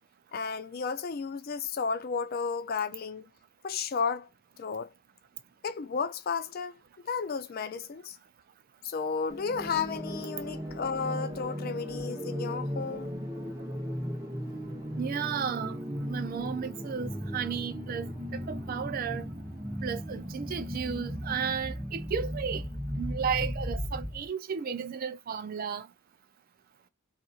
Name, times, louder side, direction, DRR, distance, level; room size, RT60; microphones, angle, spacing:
voice 1, 0.3-3.3 3.6-4.3 4.6-4.9 5.6-6.7 7.0-8.2 8.8-13.1, left 5 dB, 45° left, 0.4 m, -33 dB
sound 1, 9.3-24.3, equal, 15° right, 0.9 m, -36 dB
voice 2, 15.0-15.8 16.1-18.1 18.3-19.3 19.8-22.6 23.0-25.9, right 7 dB, 45° right, 0.4 m, -33 dB
2.8 x 2.5 x 2.3 m
head